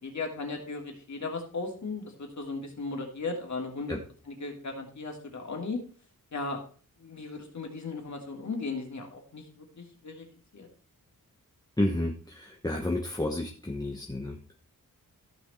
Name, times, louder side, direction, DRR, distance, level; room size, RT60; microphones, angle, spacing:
voice 1, 0.0-4.0 4.3-5.8 6.3-6.6 7.0-10.3 10.5-10.7, left 3 dB, 55° left, 2 dB, 2.8 m, -36 dB
voice 2, 11.8-14.4, left 1 dB, 10° left, 0 dB, 1.0 m, -31 dB
14.0 x 6.3 x 4.4 m, 0.42 s
wide cardioid pair, 145°, 34 cm